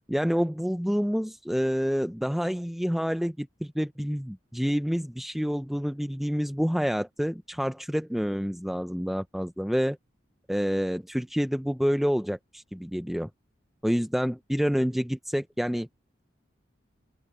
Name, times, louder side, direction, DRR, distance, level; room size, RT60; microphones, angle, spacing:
voice 1, 0.1-10.0 10.5-13.3 13.8-15.9, equal, ahead, 0.5 m, -28 dB
open air
head